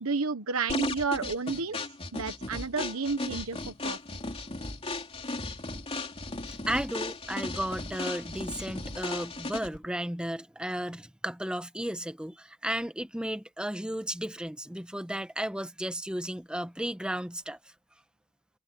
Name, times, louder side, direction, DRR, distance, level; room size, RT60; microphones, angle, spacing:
voice 1, 0.0-1.8 2.1-4.0, right 4 dB, 70° right, 1.2 m, -31 dB
sound 1, 0.7-9.8, left 2 dB, 25° left, 3.1 m, -36 dB
voice 2, 6.7-17.6, right 1 dB, 5° right, 1.1 m, -34 dB
head